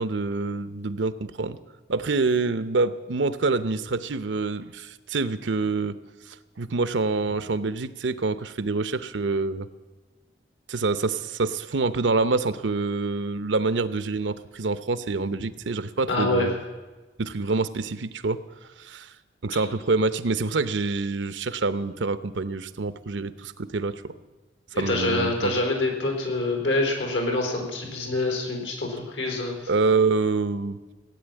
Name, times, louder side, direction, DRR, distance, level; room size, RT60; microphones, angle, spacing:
voice 1, 0.0-1.6 1.9-6.0 6.6-9.7 10.7-16.5 17.2-18.4 18.8-19.1 19.4-24.1 24.8-25.6 29.7-30.8, right 3 dB, 85° right, 13 dB, 0.8 m, -26 dB
voice 2, 16.1-16.5 24.7-29.6, left 2 dB, 85° left, 2 dB, 4.2 m, -26 dB
16.5 x 9.1 x 9.0 m, 1.2 s
head